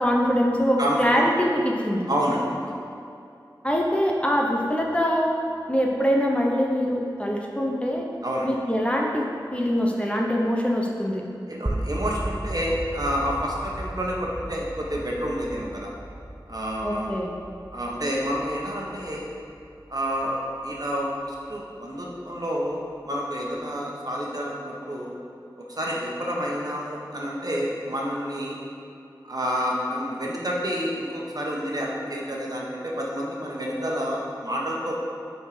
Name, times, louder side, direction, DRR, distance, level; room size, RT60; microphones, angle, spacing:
voice 1, 0.0-2.1 3.6-5.3 5.7-8.1 8.4-9.3 9.5-11.2 16.8-17.3, equal, 15° left, -1 dB, 1.0 m, -23 dB
voice 2, 0.8-1.2 2.1-2.5 8.2-8.5 11.5-15.9 16.5-17.2 17.7-19.3 19.9-25.1 25.6-28.6 29.2-34.9, equal, 55° right, -3 dB, 1.4 m, -29 dB
sound 1, 11.7-21.6, right 1 dB, 20° right, 0.5 m, -36 dB
9.2 x 4.5 x 5.1 m, 2.6 s
wide cardioid pair, 55°, 8 cm